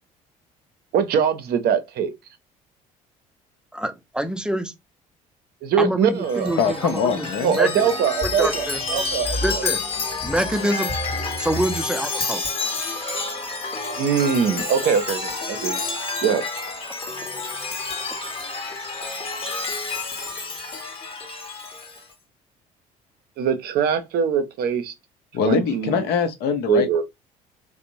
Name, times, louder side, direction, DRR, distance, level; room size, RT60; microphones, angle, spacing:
voice 1, 0.9-2.1 5.6-6.6 7.4-9.6 14.0-15.8 16.2-16.4 23.4-24.9 25.4-26.0 26.7-27.0, right 7 dB, 60° right, 0.6 m, -22 dB
voice 2, 3.7-4.7 5.8-7.3 7.5-7.8 8.4-8.8 9.4-9.8 10.2-11.0 11.4-12.5, right 1 dB, 5° right, 0.5 m, -25 dB
Chime, 6.2-22.0, left 3 dB, 30° left, 0.8 m, -29 dB
voice 3, 6.6-7.6 25.3-27.0, left 6 dB, 65° left, 0.6 m, -23 dB
2.5 x 2.0 x 2.8 m
hypercardioid pair, 60°, 18 cm